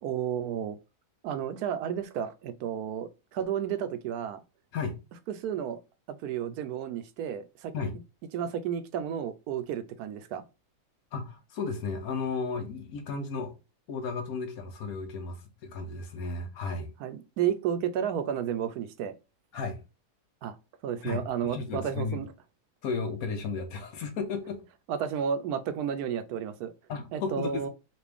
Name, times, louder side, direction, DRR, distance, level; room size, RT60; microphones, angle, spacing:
voice 1, 0.0-0.8 1.2-4.4 5.3-5.8 6.1-7.7 8.3-10.4 17.0-19.1 20.4-20.6 20.8-22.3 24.9-26.7 27.1-27.7, right 8 dB, 75° right, 1.0 m, -32 dB
voice 2, 11.1-13.5 13.9-16.9 19.5-19.8 21.0-21.2 21.5-22.2 22.8-24.6 26.9-27.7, left 4 dB, 70° left, 1.3 m, -34 dB
4.1 x 2.5 x 3.4 m
omnidirectional pair, 1.7 m